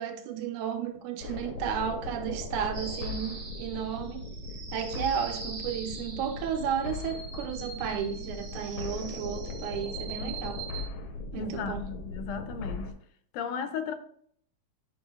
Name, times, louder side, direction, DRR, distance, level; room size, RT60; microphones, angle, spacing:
voice 1, 0.0-4.2 4.7-10.6 11.3-11.8, right 8 dB, 80° right, 2.2 m, -33 dB
sound 1, 1.2-12.9, left 3 dB, 70° left, 1.5 m, -39 dB
sound 2, 2.7-10.9, right 4 dB, 55° right, 1.8 m, -43 dB
voice 2, 11.3-12.9 13.3-13.9, left 7 dB, 90° left, 2.1 m, -35 dB
9.9 x 6.1 x 2.3 m
omnidirectional pair, 3.6 m